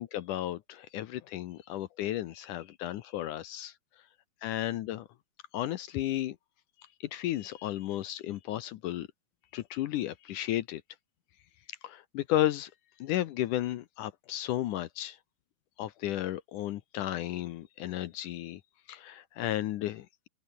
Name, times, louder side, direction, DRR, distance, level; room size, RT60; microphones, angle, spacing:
voice 1, 0.0-3.7 4.4-5.1 5.5-6.4 7.1-9.1 9.5-10.8 11.8-12.7 13.0-15.2 15.8-18.6 18.9-20.3, left 13 dB, 75° left, 2.1 m, -33 dB
omnidirectional pair, 4.2 m